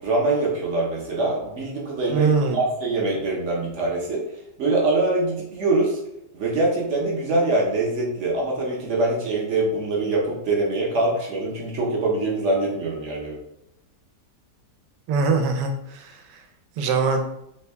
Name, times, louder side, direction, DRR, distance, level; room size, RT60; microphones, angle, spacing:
voice 1, 0.0-4.2 4.6-6.0 6.3-13.4, right 2 dB, 60° right, -3 dB, 0.8 m, -24 dB
voice 2, 2.1-2.6 15.1-16.2 16.8-17.2, right 4 dB, 85° right, 5 dB, 1.2 m, -22 dB
3.4 x 2.1 x 3.3 m, 0.81 s
omnidirectional pair, 1.8 m